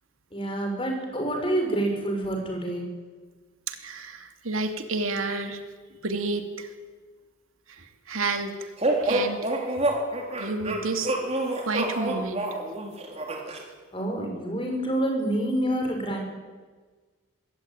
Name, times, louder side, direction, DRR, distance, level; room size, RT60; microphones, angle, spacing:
voice 1, 0.3-2.8 13.9-16.2, right 1 dB, 25° left, 2 dB, 6.0 m, -27 dB
voice 2, 3.7-5.6 6.0-6.7 7.7-8.7 9.0-9.4 10.4-11.1 11.6-12.5, right 3 dB, 70° right, 6 dB, 2.6 m, -30 dB
sound 1, 8.8-13.6, right 1 dB, 30° right, 3.9 m, -27 dB
25.5 x 21.5 x 9.3 m, 1.4 s
head